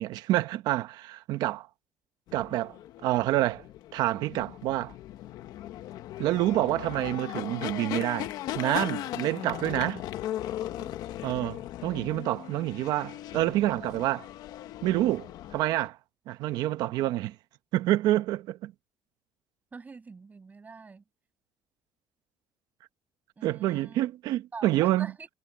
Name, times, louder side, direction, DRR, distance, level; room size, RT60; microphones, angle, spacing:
voice 1, 0.0-1.7 2.3-2.7 3.0-3.6 3.9-4.9 6.2-8.3 8.6-10.0 11.2-14.3 14.8-15.3 15.5-16.0 16.3-17.3 17.7-18.7 23.4-25.1, right 15 dB, 80° right, 1.0 m, -27 dB
sound 1, 2.3-15.9, left 13 dB, 70° left, 1.1 m, -38 dB
voice 2, 19.7-21.0 23.4-24.1 24.5-25.3, right 4 dB, 25° right, 7.8 m, -45 dB
cardioid pair, 130°, 7 cm